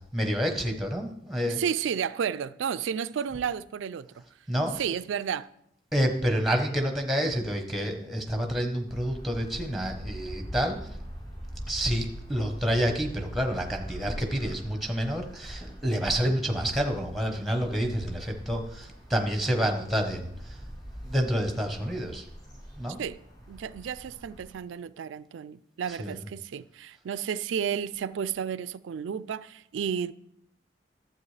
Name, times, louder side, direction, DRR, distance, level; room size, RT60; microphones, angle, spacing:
voice 1, 0.1-1.6 4.5-4.8 5.9-10.9 11.7-20.6 21.0-22.2 22.8-23.0 26.0-26.1, equal, ahead, 0.9 m, -28 dB
voice 2, 1.5-4.2 4.7-5.5 23.0-23.2 23.5-30.1, right 7 dB, 75° right, 0.3 m, -32 dB
sound 1, 8.9-24.5, equal, 25° left, 3.4 m, -43 dB
12.0 x 7.8 x 3.2 m
head